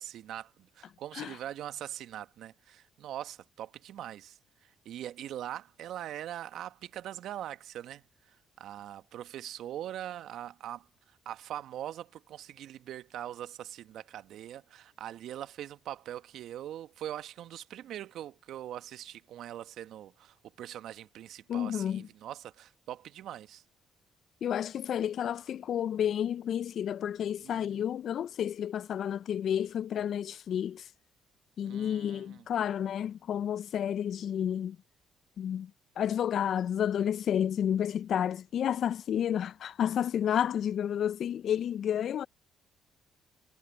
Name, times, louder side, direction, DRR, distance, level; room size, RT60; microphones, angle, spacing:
voice 1, 0.0-10.9 11.2-23.6 27.4-27.8 31.6-32.4, right 11 dB, 70° right, 1.4 m, -42 dB
voice 2, 21.5-22.1 24.4-30.9 31.6-34.8 35.4-35.7 36.0-42.3, left 9 dB, 60° left, 1.0 m, -31 dB
hypercardioid pair, 50°, 0 cm